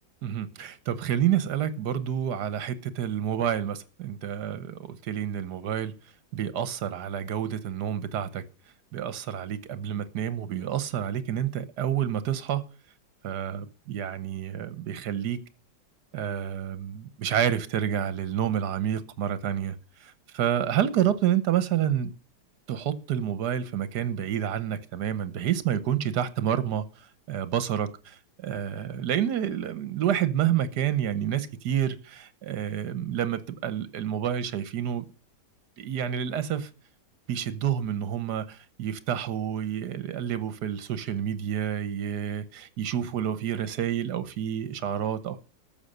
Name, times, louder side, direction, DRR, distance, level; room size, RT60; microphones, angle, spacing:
voice 1, 0.2-5.9 6.3-8.4 8.9-12.6 13.2-15.4 16.1-19.7 20.0-22.1 22.7-26.9 27.3-35.0 35.8-36.7 37.3-45.4, right 10 dB, 75° right, 1.5 m, -29 dB
13.0 x 7.1 x 6.7 m
omnidirectional pair, 1.8 m